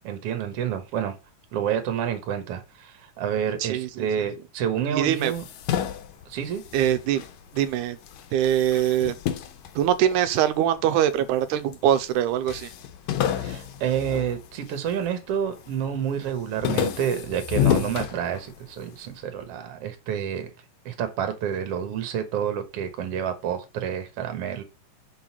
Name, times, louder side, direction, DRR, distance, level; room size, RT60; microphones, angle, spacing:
voice 1, 0.0-1.2 1.5-5.4 6.3-6.6 13.4-20.5 20.9-24.6, right 8 dB, 60° right, 2.0 m, -29 dB
voice 2, 3.6-4.1 4.9-5.3 6.7-7.2 7.6-8.0 8.3-9.2 9.8-12.7, right 11 dB, 90° right, 2.1 m, -23 dB
sound 1, 5.1-7.7 8.0-10.6 11.2-11.8 12.1-12.2 12.5-15.1 15.5-15.9 16.2-18.8, left 10 dB, 75° left, 2.1 m, -29 dB
6.5 x 3.9 x 5.9 m
omnidirectional pair, 3.5 m